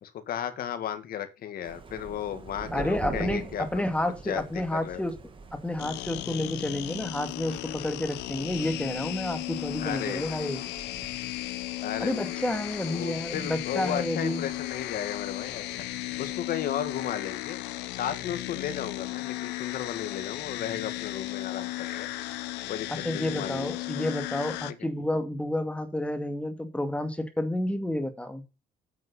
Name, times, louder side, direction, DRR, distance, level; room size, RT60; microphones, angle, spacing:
voice 1, 0.0-3.8 4.2-5.0 9.8-10.7 11.8-12.4 12.9-15.6 16.2-22.1 22.7-24.0, left 10 dB, 60° left, 2.1 m, -35 dB
Thunder, 1.6-17.1, right 4 dB, 30° right, 2.2 m, -45 dB
voice 2, 2.7-5.2 5.5-10.6 12.0-14.5 22.9-28.4, left 1 dB, 5° left, 2.2 m, -30 dB
sound 1, 5.8-24.7, left 18 dB, 90° left, 0.9 m, -35 dB
9.5 x 7.5 x 5.6 m
cardioid pair, 110°, 17 cm